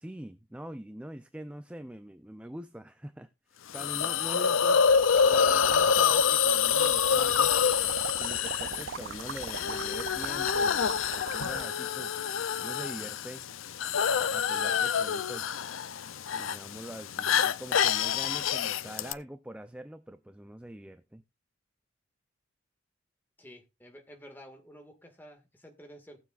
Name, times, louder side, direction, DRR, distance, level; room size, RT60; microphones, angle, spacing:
voice 1, 0.0-7.5 8.2-12.2 12.6-13.4 14.1-15.5 16.3-21.2, right 1 dB, 5° right, 0.4 m, -43 dB
Hiss, 3.7-19.1, left 7 dB, 85° left, 0.5 m, -27 dB
sound 1, 4.9-11.6, right 6 dB, 65° right, 0.5 m, -40 dB
voice 2, 23.4-26.2, equal, 10° left, 1.9 m, -51 dB
18.5 x 7.1 x 2.5 m
head